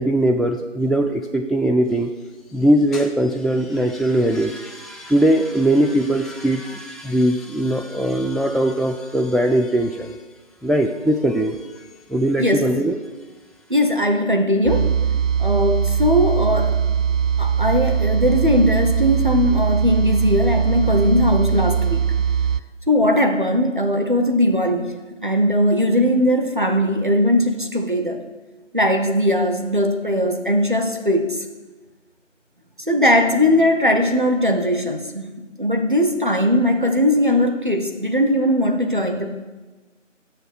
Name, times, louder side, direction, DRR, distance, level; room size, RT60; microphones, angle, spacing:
voice 1, 0.0-2.1 2.5-10.2 10.6-11.7 12.1-13.0, right 1 dB, ahead, 3 dB, 0.3 m, -20 dB
voice 2, 12.4-12.7 13.7-14.9 15.4-16.8 17.4-22.0 22.9-28.2 28.7-31.4 32.9-35.3 35.6-39.4, left 1 dB, 40° right, 5 dB, 0.7 m, -19 dB
sound 1, 14.6-22.6, right 7 dB, 75° right, 0.5 m, -20 dB
6.8 x 6.8 x 6.1 m, 1.2 s
figure-of-eight pair, 175°, 38 cm